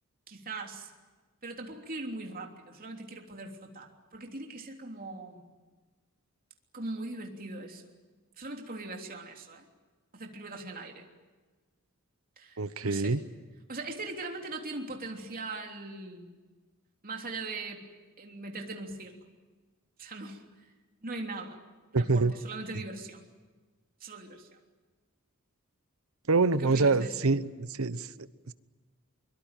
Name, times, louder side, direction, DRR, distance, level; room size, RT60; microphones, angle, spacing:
voice 1, 0.3-0.9 1.4-5.5 6.7-7.9 8.4-9.7 10.1-11.1 12.4-13.2 13.7-16.3 17.0-17.8 18.2-19.2 20.0-20.7 21.0-21.6 22.0-23.3 24.0-24.5 26.5-27.3, right 2 dB, 40° right, 2 dB, 3.3 m, -40 dB
voice 2, 12.6-13.2 21.9-22.3 26.3-28.5, right 3 dB, 70° right, 15 dB, 1.0 m, -26 dB
23.5 x 23.0 x 9.1 m, 1.3 s
head